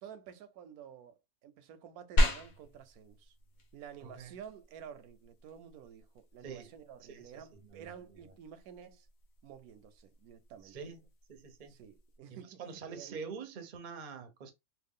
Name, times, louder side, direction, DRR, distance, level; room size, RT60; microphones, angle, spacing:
voice 1, 0.0-3.4 3.7-9.1 9.4-10.8 11.7-13.2, right 8 dB, 85° right, 1.1 m, -51 dB
sound 1, 2.2-12.2, equal, 70° left, 1.2 m, -37 dB
voice 2, 4.0-4.3 6.4-6.7 7.0-8.3 10.6-11.0 11.3-11.7 12.3-14.5, right 5 dB, 50° right, 0.6 m, -46 dB
3.2 x 2.3 x 3.5 m
omnidirectional pair, 1.6 m